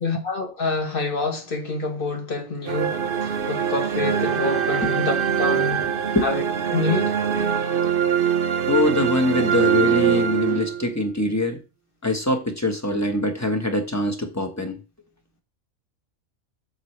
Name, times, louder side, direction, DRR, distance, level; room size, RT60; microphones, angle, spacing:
voice 1, 0.0-5.8 6.2-6.4 6.7-7.1 10.5-10.6, left 3 dB, 45° left, 1.7 m, -27 dB
sound 1, 2.7-11.0, right 8 dB, 50° right, 0.9 m, -23 dB
voice 2, 8.7-11.6 12.0-14.8, left 1 dB, 15° left, 1.2 m, -23 dB
7.9 x 7.3 x 3.3 m
omnidirectional pair, 1.3 m